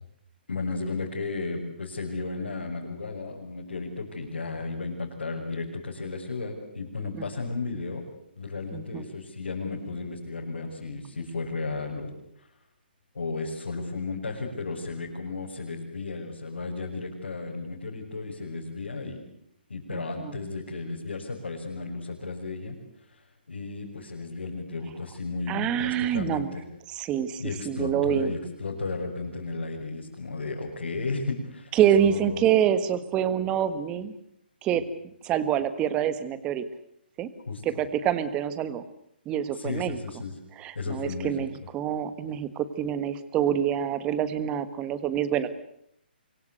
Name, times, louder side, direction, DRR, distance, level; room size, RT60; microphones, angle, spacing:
voice 1, 0.5-8.0 8.4-12.1 13.1-19.2 19.7-22.8 23.1-23.2 23.5-26.6 27.4-31.7 32.0-32.5 37.5-37.6 39.5-40.3 40.7-41.5, left 3 dB, 90° left, -3 dB, 6.5 m, -34 dB
voice 2, 8.7-9.0 19.9-20.3 25.5-26.5 26.9-28.3 31.7-34.1 34.6-34.8 35.2-36.6 37.2-37.3 37.6-38.8 39.2-40.0 40.6-45.5, right 9 dB, 15° right, 14 dB, 1.5 m, -26 dB
25.0 x 23.0 x 7.9 m, 0.72 s
hypercardioid pair, 160°, 6 cm